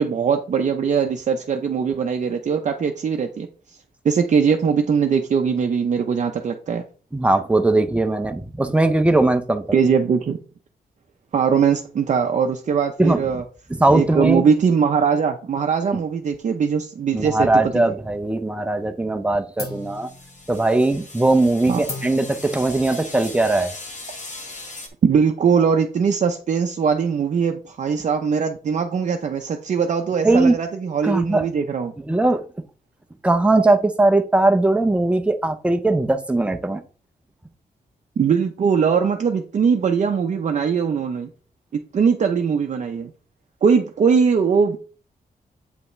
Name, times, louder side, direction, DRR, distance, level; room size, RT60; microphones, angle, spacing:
voice 1, 0.0-3.5 4.0-6.8 9.7-10.4 11.3-13.4 13.9-17.5 21.7-21.8 25.0-31.9 38.2-41.3 41.7-43.1 43.6-44.8, right 6 dB, 50° right, 4 dB, 0.6 m, -20 dB
voice 2, 7.1-9.6 13.0-13.2 13.7-14.4 17.1-20.1 20.5-23.7 30.2-30.5 31.0-31.5 32.1-32.4 33.2-36.8, right 2 dB, 5° right, 7 dB, 0.6 m, -19 dB
sound 1, 18.0-18.5 18.8-19.2 19.6-24.7, left 2 dB, 75° left, 2.4 m, -39 dB
sound 2, 19.7-24.9, left 2 dB, 50° left, 1.6 m, -39 dB
8.1 x 5.5 x 3.1 m, 0.39 s
wide cardioid pair, 175°, 16 cm